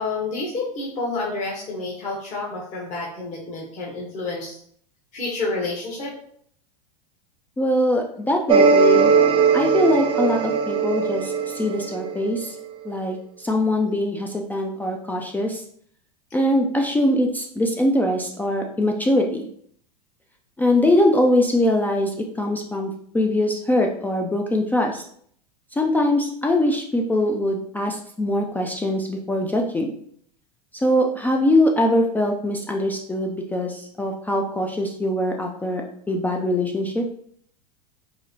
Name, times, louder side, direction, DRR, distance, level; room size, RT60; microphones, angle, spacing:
voice 1, 0.0-4.6 5.1-6.1, left 3 dB, 35° left, -4 dB, 1.0 m, -29 dB
voice 2, 7.6-9.1 9.5-12.6 12.8-15.6 16.3-19.5 20.6-25.0 25.7-29.9 30.8-37.0, left 1 dB, 10° left, 1 dB, 0.3 m, -22 dB
sound 1, 8.5-12.4, right 5 dB, 25° right, 0.6 m, -19 dB
4.7 x 2.1 x 2.7 m, 0.63 s
hypercardioid pair, 95°, 21 cm